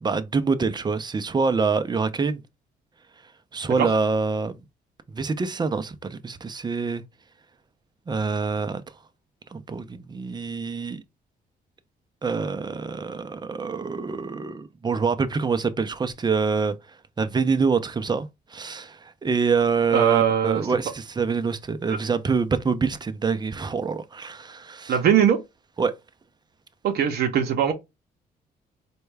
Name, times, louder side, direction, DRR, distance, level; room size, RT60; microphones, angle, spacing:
voice 1, 0.0-2.4 3.5-4.6 5.1-7.0 8.1-8.8 9.5-11.0 12.2-16.7 17.2-25.0 25.8-25.9, right 5 dB, 25° right, 0.5 m, -25 dB
voice 2, 19.9-20.7 21.9-22.0 24.9-25.4 26.8-27.7, right 9 dB, 70° right, 0.7 m, -21 dB
4.3 x 2.3 x 3.2 m
cardioid pair, 90°, 17 cm